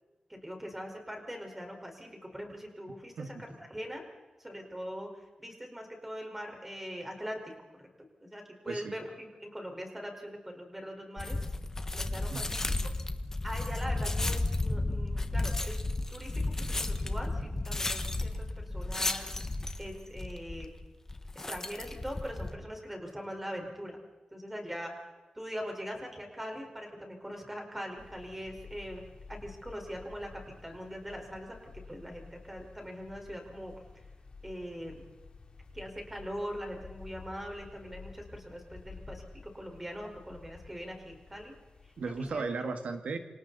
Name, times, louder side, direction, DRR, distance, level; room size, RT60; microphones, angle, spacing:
voice 1, 0.3-4.1 4.4-5.1 5.4-7.5 7.8-7.9 8.2-11.4 11.9-12.6 13.4-15.8 16.1-19.3 19.8-20.7 21.5-24.0 24.3-24.9 25.3-29.0 29.3-31.6 31.9-33.7 34.4-35.0 35.7-41.5 41.8-41.9 42.3-42.4, equal, 10° right, 2 dB, 4.8 m, -42 dB
sound 1, 11.2-22.6, left 2 dB, 20° left, 1.4 m, -33 dB
sound 2, 28.0-42.3, left 4 dB, 45° left, 2.9 m, -52 dB
voice 2, 42.0-43.2, right 4 dB, 90° right, 6 dB, 1.9 m, -35 dB
28.5 x 27.0 x 4.2 m, 1.2 s
wide cardioid pair, 155°, 2 cm